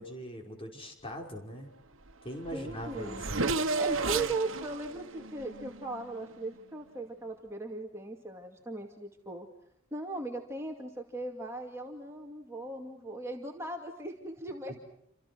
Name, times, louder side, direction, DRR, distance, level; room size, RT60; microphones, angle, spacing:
voice 1, 0.0-1.7 2.2-3.6, equal, 25° left, 1 dB, 5.6 m, -41 dB
Race car auto racing / Accelerating revving vroom, 2.1-2.2 2.4-6.4, right 3 dB, 70° right, 1.6 m, -33 dB
voice 2, 2.5-3.2 3.8-9.5 9.9-14.8, right 2 dB, 15° right, 1 dB, 2.4 m, -38 dB
29.5 x 26.5 x 6.3 m, 0.72 s
head